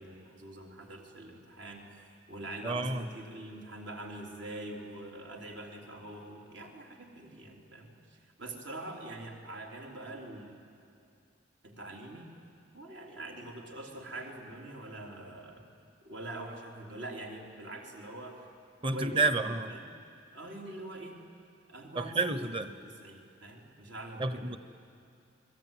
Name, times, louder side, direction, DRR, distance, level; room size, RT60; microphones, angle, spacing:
voice 1, 0.0-1.9 2.3-10.6 11.6-12.3 12.7-15.7 16.0-18.5 18.9-19.9 20.3-21.2 21.7-22.4 22.7-24.6, right 2 dB, 75° right, 0 dB, 3.8 m, -44 dB
voice 2, 2.6-3.0 18.8-19.7 21.9-22.7 24.2-24.6, right 3 dB, 25° right, 11 dB, 1.0 m, -30 dB
29.0 x 22.0 x 9.2 m, 2.6 s
head